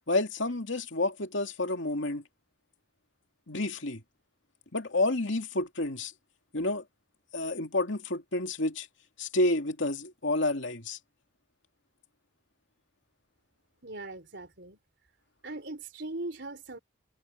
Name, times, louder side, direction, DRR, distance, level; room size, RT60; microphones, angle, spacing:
voice 1, 0.1-2.2 3.5-4.0 4.7-6.1 6.5-6.8 7.3-8.9 9.2-11.0, left 2 dB, 70° left, 2.6 m, -29 dB
voice 2, 13.8-14.8 15.4-16.8, right 2 dB, 60° right, 4.5 m, -40 dB
head